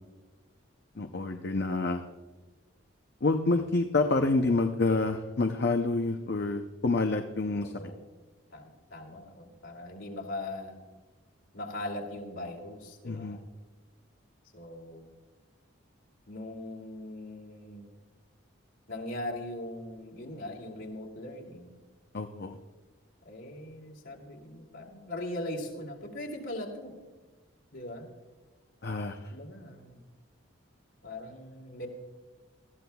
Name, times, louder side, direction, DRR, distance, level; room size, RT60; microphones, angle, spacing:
voice 1, 1.0-2.0 3.2-7.7 13.0-13.4 22.1-22.6 28.8-29.3, left 3 dB, 50° left, 5 dB, 0.6 m, -28 dB
voice 2, 7.6-8.0 8.5-10.8 11.5-13.4 14.5-15.1 16.3-17.9 18.9-21.8 23.2-26.9 27.7-28.1 29.3-30.0 31.0-31.9, left 1 dB, 70° left, -1 dB, 2.7 m, -40 dB
20.0 x 14.0 x 2.3 m, 1.3 s
head